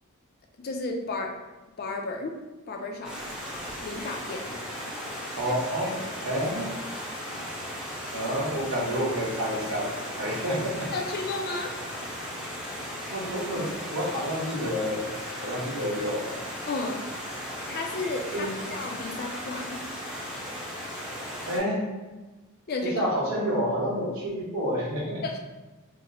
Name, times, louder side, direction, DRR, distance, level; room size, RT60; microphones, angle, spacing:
voice 1, 0.6-1.4 1.8-2.3 2.7-3.2 3.8-4.6 5.5-5.6 6.6-6.7 10.9-11.7 16.7-17.0 17.7-19.8 22.7-23.1 25.2-25.4, left 3 dB, 45° left, 3 dB, 0.4 m, -33 dB
Stream, 3.0-21.6, equal, 5° right, 0.6 m, -36 dB
voice 2, 5.3-5.9 6.2-6.7 8.1-9.9 10.2-10.9 13.1-15.0 15.4-16.4 18.3-18.7 21.5-21.8 22.8-25.2, equal, 75° right, -4 dB, 1.0 m, -29 dB
2.9 x 2.0 x 3.9 m, 1.2 s
head